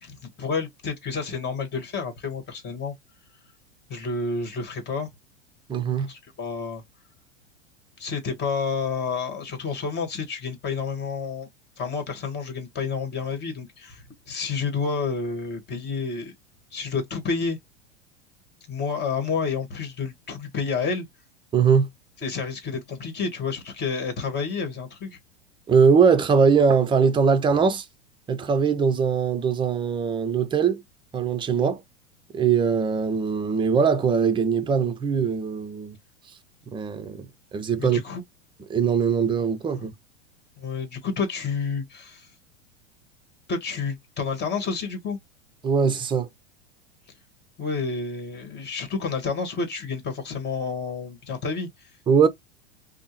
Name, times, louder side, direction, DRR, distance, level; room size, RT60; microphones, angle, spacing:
voice 1, 0.0-2.9 3.9-5.1 6.1-6.8 8.0-11.5 11.8-16.3 16.7-17.6 18.7-21.0 22.2-25.2 37.8-38.2 39.7-39.9 40.6-42.3 43.5-45.2 47.6-51.9, left 5 dB, 30° left, 1.7 m, -30 dB
voice 2, 5.7-6.1 21.5-21.9 25.7-27.9 28.3-30.8 31.1-31.8 32.3-36.0 36.7-37.3 37.5-38.0 38.7-39.9 45.6-46.3 52.1-52.3, right 6 dB, 15° right, 0.6 m, -21 dB
5.2 x 2.1 x 3.1 m
figure-of-eight pair, 90°, 35 cm